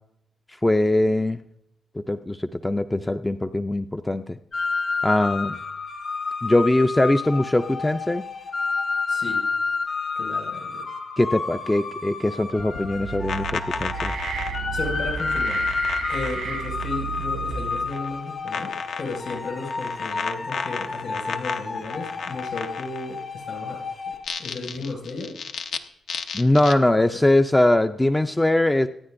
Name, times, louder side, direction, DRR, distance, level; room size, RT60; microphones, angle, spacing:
voice 1, 0.6-1.4 2.0-4.4 5.0-5.6 6.4-8.2 11.2-14.1 26.3-28.9, left 1 dB, 10° left, 8 dB, 0.3 m, -21 dB
sound 1, 4.5-24.3, left 4 dB, 40° left, 0.7 m, -30 dB
voice 2, 9.1-9.4 10.2-10.8 14.7-15.6 16.1-23.8 24.4-25.3 27.0-27.2, left 3 dB, 60° left, 0 dB, 5.5 m, -34 dB
sound 2, 12.6-17.2 17.5-18.1 18.5-23.2 24.1-25.8 26.1-26.7, left 6 dB, 75° left, 0.8 m, -33 dB
sound 3, 12.8-18.1, right 8 dB, 65° right, 0.4 m, -33 dB
25.5 x 9.5 x 2.5 m, 0.80 s
wide cardioid pair, 145°, 0 cm